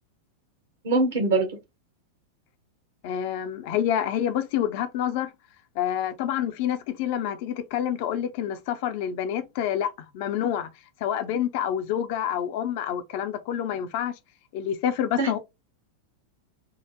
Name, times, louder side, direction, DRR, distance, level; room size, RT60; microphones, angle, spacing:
voice 1, 0.8-1.5 15.2-15.4, right 3 dB, 60° right, 1.0 m, -23 dB
voice 2, 3.0-5.3 5.8-10.7 11.0-14.1 14.5-15.4, left 10 dB, 50° left, 0.5 m, -27 dB
3.6 x 2.0 x 2.8 m
figure-of-eight pair, 90°, 0 cm